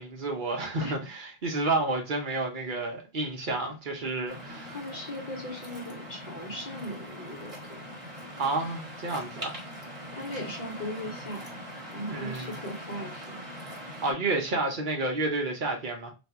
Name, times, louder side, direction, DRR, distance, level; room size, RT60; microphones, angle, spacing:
voice 1, 0.0-4.8 8.4-9.6 12.1-12.6 14.0-16.1, right 2 dB, 55° right, 0.9 m, -30 dB
Waves surf, 4.3-14.1, equal, 35° right, 1.2 m, -42 dB
voice 2, 4.7-7.8 10.1-11.5 11.9-13.4, equal, 45° left, 1.1 m, -38 dB
2.6 x 2.4 x 4.1 m
omnidirectional pair, 1.0 m